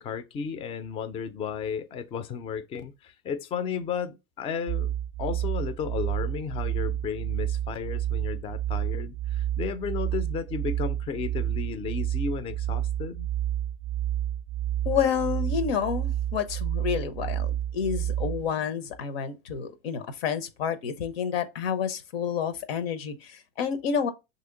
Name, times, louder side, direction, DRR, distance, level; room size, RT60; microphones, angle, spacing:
voice 1, 0.0-4.9 5.2-13.3, left 6 dB, 20° left, 0.3 m, -33 dB
sound 1, 4.7-18.5, right 12 dB, 35° right, 0.5 m, -30 dB
voice 2, 14.8-24.1, left 7 dB, 80° left, 0.8 m, -29 dB
3.1 x 2.8 x 3.7 m
supercardioid pair, 120°, 29 cm